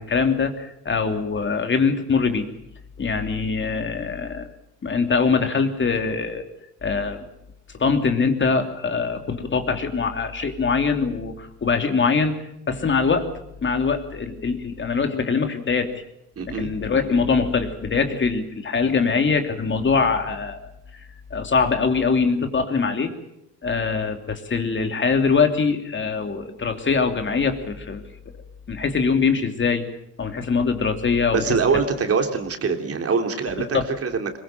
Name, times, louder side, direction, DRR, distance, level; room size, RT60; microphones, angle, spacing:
voice 1, 0.0-2.5 3.0-4.5 4.8-6.4 6.8-7.2 7.8-12.4 12.7-13.3 13.6-16.0 16.5-20.7 21.3-23.1 23.6-28.0 28.7-29.9 30.2-31.6 33.7-33.8, left 5 dB, 40° left, 6 dB, 3.0 m, -23 dB
voice 2, 16.4-16.7 31.3-34.3, right 5 dB, 50° right, 5 dB, 3.3 m, -23 dB
22.0 x 21.0 x 7.6 m, 0.81 s
cardioid pair, 90°, 30 cm